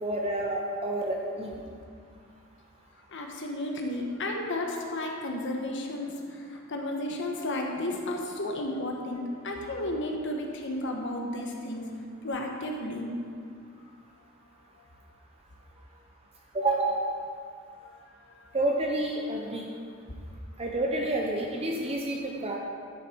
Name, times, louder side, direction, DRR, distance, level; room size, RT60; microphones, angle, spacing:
voice 1, 0.0-1.6 16.5-17.0 18.5-19.6 20.6-22.6, right 1 dB, 30° right, 0 dB, 0.7 m, -29 dB
voice 2, 3.1-11.9 12.2-13.1 14.8-14.9 17.8-18.6, left 1 dB, 60° left, 1 dB, 1.3 m, -33 dB
12.0 x 6.7 x 4.5 m, 2.2 s
head